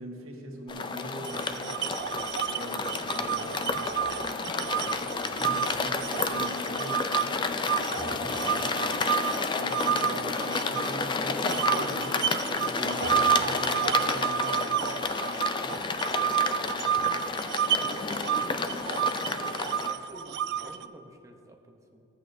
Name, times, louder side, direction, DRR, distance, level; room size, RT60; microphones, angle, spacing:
voice 1, 0.0-1.8 2.5-8.7 9.5-14.7, right 1 dB, 85° right, -1 dB, 1.5 m, -42 dB
sound 1, 0.7-19.9, left 4 dB, 25° left, 0.3 m, -31 dB
sound 2, 1.2-7.3 7.6-11.1 11.5-20.9, right 9 dB, 55° right, 0.3 m, -30 dB
Guitar, 8.0-15.8, equal, 80° left, 2.1 m, -45 dB
voice 2, 15.5-15.9 16.2-17.2 17.8-22.0, right 1 dB, 15° right, 3 dB, 0.7 m, -50 dB
14.5 x 8.3 x 2.6 m, 2.9 s
head